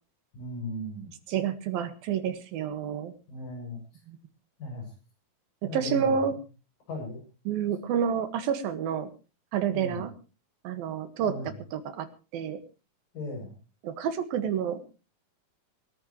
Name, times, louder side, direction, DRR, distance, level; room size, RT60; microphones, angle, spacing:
voice 1, 0.3-1.1 3.3-3.8 4.6-4.9 5.7-6.3 6.9-7.2 9.7-10.1 11.3-11.6 13.1-13.6, left 1 dB, 70° left, 1 dB, 9.2 m, -37 dB
voice 2, 1.3-3.1 4.1-4.2 5.7-6.3 7.5-9.1 9.5-10.1 10.7-11.3 11.7-12.1 12.3-12.6 13.8-14.8, right 8 dB, 85° right, 10 dB, 3.5 m, -29 dB
23.5 x 13.5 x 3.1 m, 0.33 s
omnidirectional pair, 4.1 m